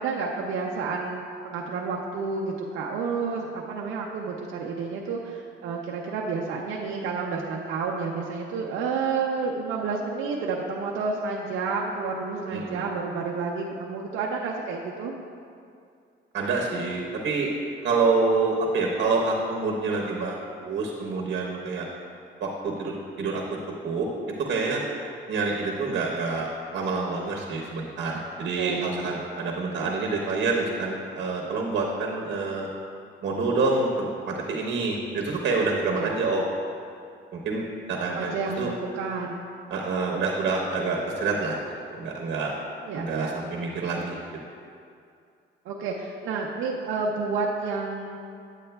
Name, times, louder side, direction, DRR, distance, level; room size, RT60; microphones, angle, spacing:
voice 1, 0.0-15.1 28.6-29.0 36.0-36.2 38.1-39.4 42.8-43.3 45.6-48.2, right 4 dB, 85° right, -2 dB, 0.5 m, -30 dB
voice 2, 12.5-12.8 16.3-17.5 17.8-21.9 22.4-23.4 23.8-24.1 24.4-24.8 25.3-26.5 26.7-32.7 33.2-36.4 37.3-38.7 39.7-41.6 41.9-42.5 42.9-44.2, right 3 dB, 60° right, -1 dB, 0.9 m, -27 dB
8.6 x 8.1 x 2.2 m, 2.4 s
cardioid pair, 90°, 20 cm